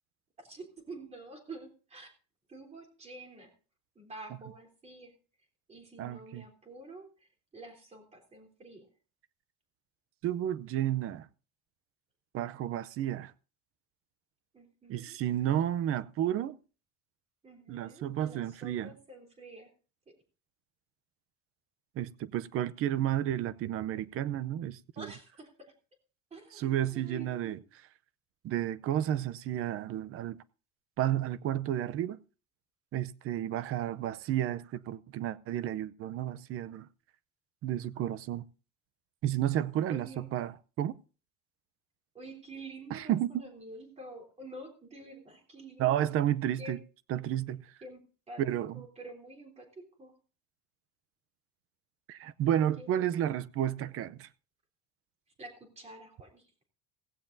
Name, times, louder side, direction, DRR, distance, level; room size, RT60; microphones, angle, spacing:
voice 1, 0.4-2.1 2.5-3.5 4.0-5.1 5.7-8.9 14.5-15.2 17.4-19.7 25.0-25.7 26.3-27.6 33.7-33.9 39.9-40.3 42.1-46.1 46.6-46.8 47.8-48.4 48.7-50.2 52.8-53.3 55.4-56.5, right 2 dB, 20° right, 3.4 m, -48 dB
voice 2, 6.0-6.4 10.2-11.3 12.3-13.3 14.9-16.6 17.7-18.9 22.0-25.1 26.6-27.6 28.4-30.4 31.0-32.2 32.9-36.9 37.6-38.4 39.2-40.9 42.9-43.3 45.8-46.8 47.1-47.6 48.4-48.8 52.1-54.3, right 11 dB, 40° right, 0.6 m, -31 dB
16.5 x 16.0 x 2.6 m
cardioid pair, 175°, 33 cm